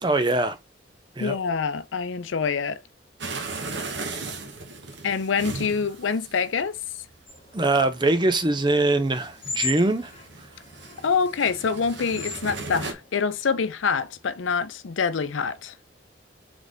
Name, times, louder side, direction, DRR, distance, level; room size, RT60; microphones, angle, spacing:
voice 1, 0.0-0.6 1.2-1.4 7.5-10.1, right 2 dB, 25° right, 0.6 m, -22 dB
voice 2, 1.2-2.8 5.0-6.8 11.0-15.7, left 5 dB, 85° left, 0.5 m, -26 dB
sound 1, 3.2-12.9, right 3 dB, 65° right, 1.0 m, -37 dB
sound 2, 7.3-13.2, left 5 dB, 30° left, 1.2 m, -39 dB
4.0 x 3.3 x 3.4 m
head